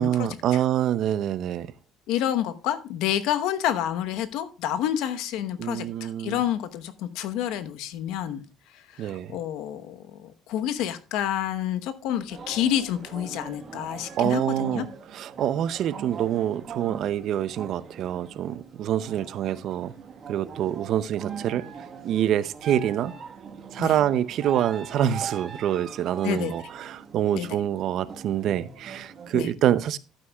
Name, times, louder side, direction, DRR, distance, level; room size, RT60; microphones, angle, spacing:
voice 1, 0.0-1.7 5.6-6.4 9.0-9.4 14.2-14.9 15.1-19.9 20.3-21.6 22.0-23.1 23.7-30.0, right 11 dB, 55° right, 0.6 m, -26 dB
voice 2, 2.1-8.4 8.9-14.8 23.8-24.0 26.2-26.5 27.3-27.5 29.3-29.5, left 10 dB, 80° left, 1.0 m, -29 dB
sound 1, 12.3-29.5, right 6 dB, 35° right, 1.3 m, -41 dB
11.5 x 9.2 x 2.3 m
cardioid pair, 150°, 0 cm